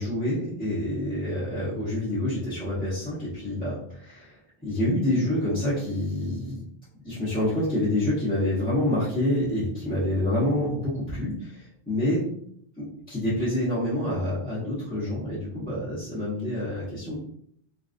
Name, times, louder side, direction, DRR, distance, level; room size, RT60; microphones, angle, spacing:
voice 1, 0.0-4.4 4.6-6.6 7.0-12.2 12.8-17.2, left 1 dB, 10° left, -12 dB, 1.0 m, -27 dB
3.7 x 2.4 x 2.6 m, 0.66 s
omnidirectional pair, 1.0 m